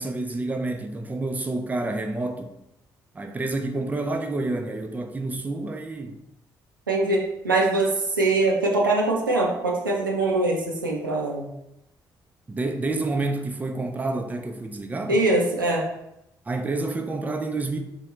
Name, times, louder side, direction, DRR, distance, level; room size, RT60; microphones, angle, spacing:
voice 1, 0.0-2.5 3.1-6.2 12.5-15.2 16.5-17.8, right 2 dB, 15° right, 0.4 m, -29 dB
voice 2, 6.9-11.5 15.1-15.9, right 2 dB, 85° right, 0.4 m, -23 dB
3.7 x 2.1 x 3.0 m
figure-of-eight pair, 40°, 11 cm